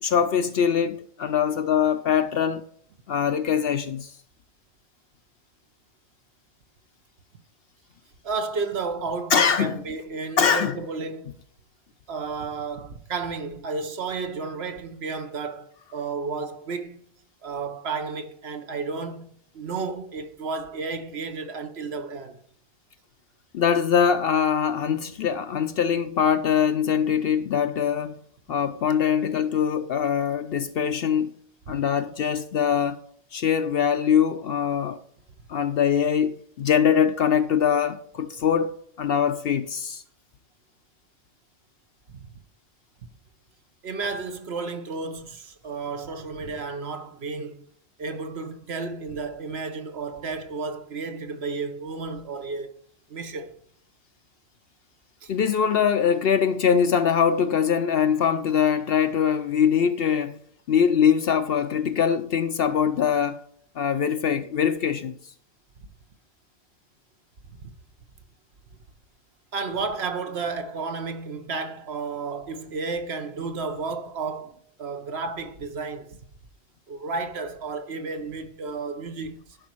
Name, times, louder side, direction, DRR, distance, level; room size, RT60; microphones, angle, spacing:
voice 1, 0.0-2.6 3.1-4.1 9.3-9.8 10.4-10.7 23.5-28.2 28.5-31.3 31.7-33.0 33.3-35.0 35.5-40.0 55.3-60.4 60.7-63.4 63.8-65.2, left 7 dB, 60° left, 0.7 m, -22 dB
voice 2, 8.2-11.3 12.1-17.0 17.4-22.4 31.7-31.8 42.1-42.3 43.8-47.6 48.0-52.7 53.1-53.5 55.2-55.3 67.5-67.7 69.5-76.2 76.9-79.6, right 4 dB, 60° right, 1.0 m, -32 dB
11.5 x 5.2 x 4.5 m
omnidirectional pair, 1.3 m